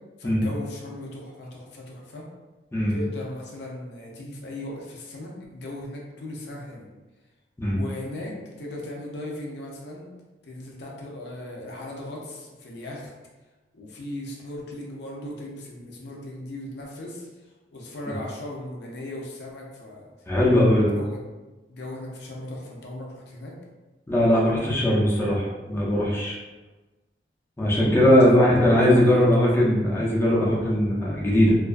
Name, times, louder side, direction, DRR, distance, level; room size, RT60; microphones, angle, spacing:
voice 1, 0.2-2.2 2.9-6.9 7.7-10.1 10.4-13.1 13.7-20.1 20.7-21.2 21.7-23.6 28.1-28.4 28.8-29.3, left 1 dB, 65° left, -2 dB, 0.5 m, -37 dB
voice 2, 20.3-20.9 24.1-26.4 27.6-31.6, left 1 dB, 15° left, -6 dB, 0.5 m, -20 dB
2.3 x 2.3 x 2.4 m, 1.2 s
head